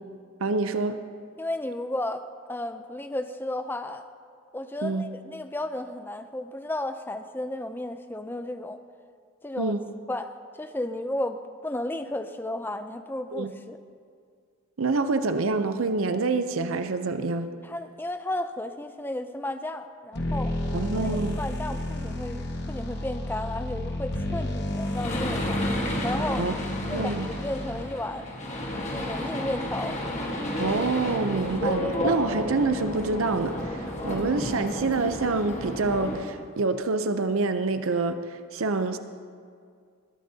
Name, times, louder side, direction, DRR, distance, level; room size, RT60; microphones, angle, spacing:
voice 1, 0.4-1.0 4.8-5.0 9.6-9.8 13.3-13.5 14.8-17.5 20.7-21.4 26.4-26.5 26.9-27.3 30.6-39.0, right 3 dB, 70° right, 9 dB, 0.6 m, -26 dB
voice 2, 1.4-4.0 4.5-8.8 9.4-9.7 10.1-13.8 17.6-20.5 21.0-25.6 26.0-26.5 26.9-28.3 28.9-30.0, left 1 dB, 10° left, 8 dB, 0.4 m, -33 dB
sound 1, 20.1-28.1, left 1 dB, 50° left, 1.2 m, -31 dB
sound 2, 24.9-36.2, left 1 dB, 30° left, 1.4 m, -31 dB
21.0 x 12.0 x 2.8 m, 2.1 s
head